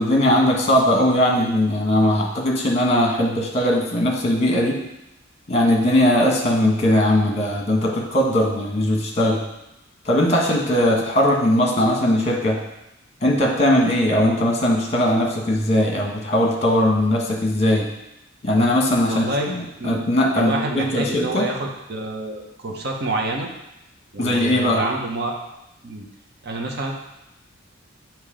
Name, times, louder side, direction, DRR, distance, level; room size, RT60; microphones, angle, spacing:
voice 1, 0.0-4.8 5.5-9.4 10.0-12.6 13.2-17.9 18.4-21.5 24.2-24.8, left 1 dB, 35° left, 0 dB, 1.2 m, -19 dB
voice 2, 19.0-19.5 19.8-20.1 20.3-23.5 24.1-25.3 25.8-26.1 26.4-26.9, right 2 dB, 55° right, 1 dB, 0.9 m, -27 dB
7.5 x 3.0 x 5.0 m, 0.88 s
head